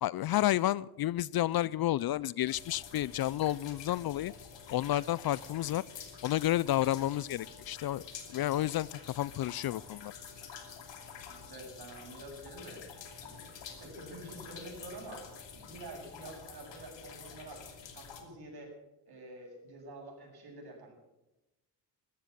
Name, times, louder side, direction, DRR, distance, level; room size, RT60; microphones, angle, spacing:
voice 1, 0.0-4.3 4.7-5.8 6.2-8.0 8.3-10.1, left 14 dB, 55° left, 23 dB, 0.5 m, -31 dB
sound 1, 2.5-18.2, left 6 dB, 70° left, 2.8 m, -48 dB
voice 2, 11.3-12.8 13.2-17.6 17.9-18.8 19.1-20.9, right 2 dB, 55° right, 0 dB, 7.5 m, -48 dB
14.0 x 13.5 x 7.4 m, 0.98 s
cardioid pair, 70°, 45 cm